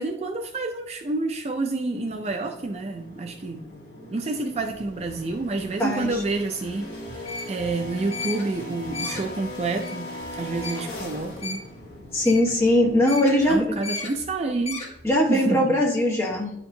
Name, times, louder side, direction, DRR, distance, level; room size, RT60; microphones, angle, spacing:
voice 1, 0.0-3.7 4.1-10.1 10.4-11.7 13.4-14.8 15.3-15.8, right 3 dB, 35° right, 5 dB, 0.4 m, -29 dB
sound 1, 1.8-13.6, left 2 dB, 60° left, 1.6 m, -40 dB
sound 2, 4.5-15.1, left 3 dB, 35° left, 1.6 m, -38 dB
voice 2, 5.8-6.1 12.1-13.7 15.0-16.5, left 1 dB, 15° left, -2 dB, 1.2 m, -20 dB
10.0 x 4.4 x 2.7 m, 0.78 s
head